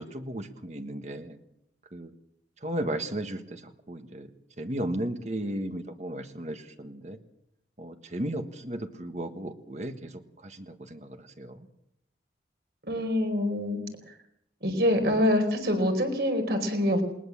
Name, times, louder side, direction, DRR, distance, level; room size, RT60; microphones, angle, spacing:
voice 1, 0.0-1.4 1.9-2.1 2.6-4.3 4.6-7.2 7.8-10.1 10.4-11.7, right 1 dB, 40° right, 7 dB, 1.5 m, -35 dB
voice 2, 12.8-13.8 14.6-17.0, left 1 dB, 60° right, 6 dB, 4.6 m, -25 dB
20.0 x 20.0 x 7.4 m, 0.79 s
head